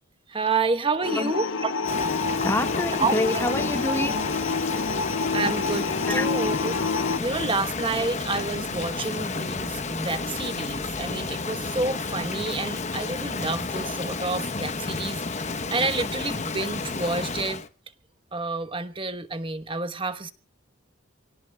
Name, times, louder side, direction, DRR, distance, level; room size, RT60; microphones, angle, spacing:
voice 1, 0.3-1.7 3.0-3.5 5.3-17.6 18.3-20.3, right 3 dB, 25° right, 1.1 m, -29 dB
sound 1, 1.0-7.2, left 4 dB, 75° left, 0.9 m, -28 dB
Rain, 1.8-17.7, left 3 dB, 35° left, 0.9 m, -31 dB
voice 2, 2.4-4.2 6.1-6.3, left 1 dB, 10° left, 1.6 m, -27 dB
27.5 x 17.5 x 2.3 m
head